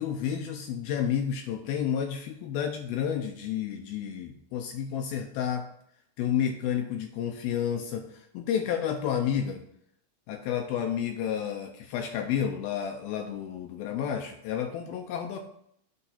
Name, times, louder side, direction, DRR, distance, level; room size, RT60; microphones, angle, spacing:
voice 1, 0.0-5.6 6.2-9.6 10.3-15.4, left 8 dB, 80° left, 4 dB, 2.3 m, -30 dB
8.1 x 3.2 x 5.5 m, 0.70 s
omnidirectional pair, 4.8 m